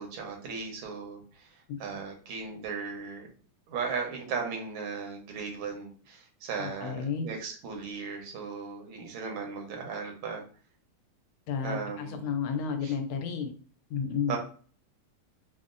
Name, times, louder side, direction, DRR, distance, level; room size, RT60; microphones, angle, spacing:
voice 1, 0.0-3.3 3.7-10.4 11.6-12.3 12.8-12.9 14.3-14.4, right 5 dB, 85° right, 2 dB, 1.6 m, -37 dB
voice 2, 6.6-7.3 11.5-13.5 13.9-14.4, left 6 dB, 80° left, 6 dB, 1.4 m, -32 dB
3.9 x 2.1 x 2.4 m, 0.42 s
omnidirectional pair, 2.3 m